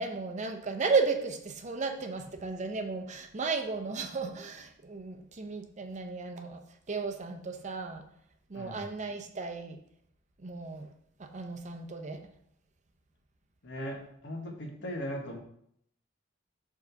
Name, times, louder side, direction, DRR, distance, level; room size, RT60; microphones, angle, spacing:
voice 1, 0.0-6.6 6.9-8.0 8.5-9.8 10.4-10.9 11.2-12.2, right 4 dB, 35° right, 5 dB, 0.6 m, -34 dB
voice 2, 8.5-8.9 13.6-15.4, equal, 60° left, 2 dB, 1.3 m, -38 dB
4.9 x 3.9 x 5.7 m, 0.69 s
head